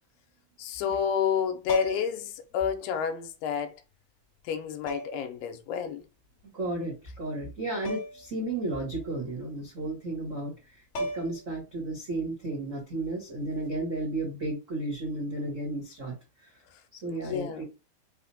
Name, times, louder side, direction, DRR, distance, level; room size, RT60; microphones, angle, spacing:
voice 1, 0.6-3.8 4.5-6.0 17.1-17.6, left 8 dB, 85° left, 2.4 m, -30 dB
sound 1, 1.6-2.2 3.6-3.7 4.9-5.3 7.8-8.3 8.6-8.7 10.5-10.6 10.9-11.5 13.5-13.7, right 1 dB, 55° left, 1.4 m, -34 dB
voice 2, 6.5-16.1 16.9-17.6, right 2 dB, 75° right, 0.7 m, -33 dB
5.5 x 2.1 x 4.1 m
omnidirectional pair, 4.1 m